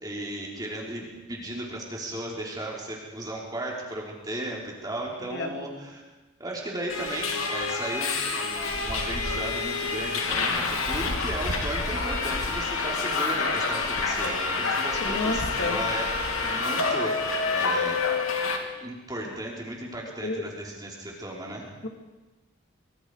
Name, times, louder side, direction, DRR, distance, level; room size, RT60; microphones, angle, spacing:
voice 1, 0.0-6.0 6.4-16.1 16.4-18.2 18.8-21.7, right 1 dB, 20° right, -2 dB, 3.9 m, -35 dB
Subway metro underground, 6.9-18.6, left 4 dB, 90° left, 2.9 m, -28 dB
voice 2, 15.0-15.8 20.2-20.5 21.8-21.9, left 2 dB, 55° left, 4 dB, 2.6 m, -30 dB
24.5 x 23.5 x 5.0 m, 1.2 s
head